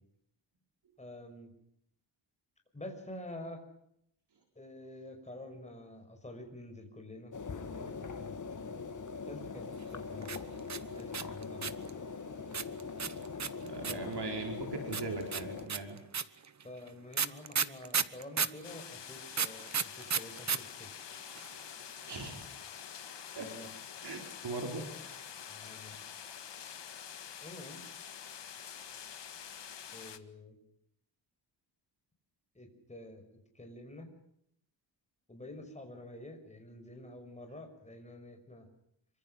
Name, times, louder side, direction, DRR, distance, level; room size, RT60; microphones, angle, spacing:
voice 1, 1.0-1.5 2.7-3.6 4.6-8.8 9.3-10.4 10.8-11.8 13.9-14.2 16.6-20.9 23.4-23.7 25.5-26.0 27.4-27.8 29.9-30.5 32.5-34.1 35.3-38.7, left 1 dB, 15° left, 4 dB, 5.9 m, -48 dB
sound 1, 7.3-15.7, left 5 dB, 40° left, 2.4 m, -42 dB
sound 2, 10.2-11.9 12.5-14.1 14.9-18.6 19.3-20.6 20.8-20.9 21.1-21.6, right 6 dB, 40° right, 1.1 m, -32 dB
voice 2, 13.6-16.0 22.1-22.5 23.3-23.5 24.0-25.3, right 3 dB, 60° right, 4 dB, 4.7 m, -40 dB
sound 3, 18.6-30.2, left 8 dB, 65° left, 1.9 m, -47 dB
26.5 x 25.0 x 6.6 m, 0.73 s
wide cardioid pair, 170°, 45 cm